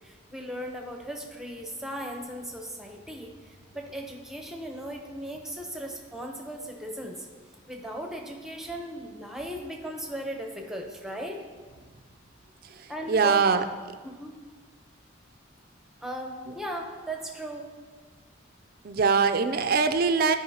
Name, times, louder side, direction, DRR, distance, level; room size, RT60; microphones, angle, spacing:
voice 1, 0.0-7.3 7.7-11.4 12.9-13.4 14.0-14.3 16.0-17.7, right 1 dB, ahead, 1 dB, 0.8 m, -37 dB
voice 2, 13.1-13.6 18.8-20.4, right 5 dB, 50° right, 9 dB, 0.4 m, -22 dB
12.5 x 5.3 x 2.8 m, 1.4 s
head